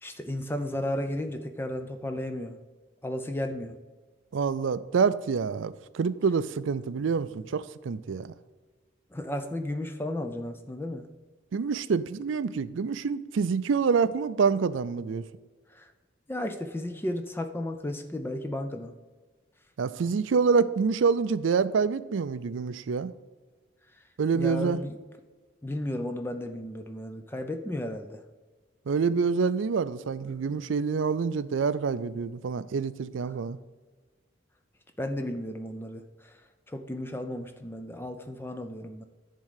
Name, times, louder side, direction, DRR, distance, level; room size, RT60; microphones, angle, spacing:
voice 1, 0.0-2.6 3.0-3.8 9.1-11.1 15.7-15.9 16.3-18.9 24.3-25.0 25.6-28.2 35.0-36.3 36.7-39.0, left 1 dB, 10° left, 7 dB, 0.4 m, -34 dB
voice 2, 4.3-8.3 11.5-15.2 19.8-23.1 24.2-24.8 28.9-33.6, right 5 dB, 80° right, 15 dB, 0.4 m, -27 dB
10.5 x 3.8 x 6.4 m, 1.4 s
head